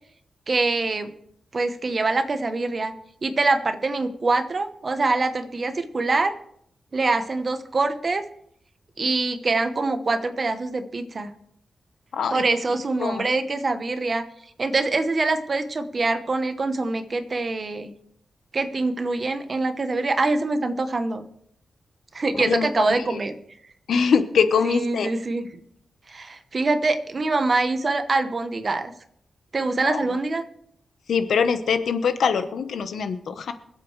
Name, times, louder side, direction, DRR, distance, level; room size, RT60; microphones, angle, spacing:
voice 1, 0.5-1.1 1.5-2.9 3.2-6.3 6.9-8.2 9.0-11.3 12.3-14.2 14.6-17.9 18.5-21.3 22.1-23.3 24.6-25.5 26.1-28.9 29.5-30.4, right 3 dB, 35° right, 9 dB, 0.9 m, -24 dB
voice 2, 12.1-12.4 13.0-13.3 22.4-22.9 23.9-25.1 29.8-30.0 31.1-33.5, left 6 dB, 85° left, 9 dB, 1.0 m, -23 dB
25.0 x 8.5 x 3.2 m, 0.71 s
wide cardioid pair, 155°, 0 cm